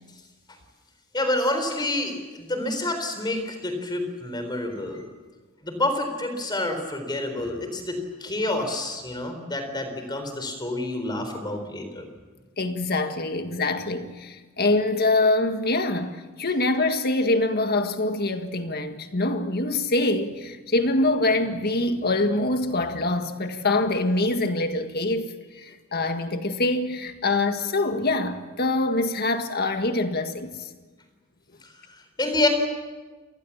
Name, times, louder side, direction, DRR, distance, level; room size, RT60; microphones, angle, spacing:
voice 1, 1.1-5.0 5.6-12.0 32.2-32.5, left 2 dB, 20° left, 4.0 m, -28 dB
voice 2, 12.6-25.3 25.6-30.7, left 2 dB, 45° left, 1.8 m, -24 dB
27.5 x 20.0 x 7.3 m
head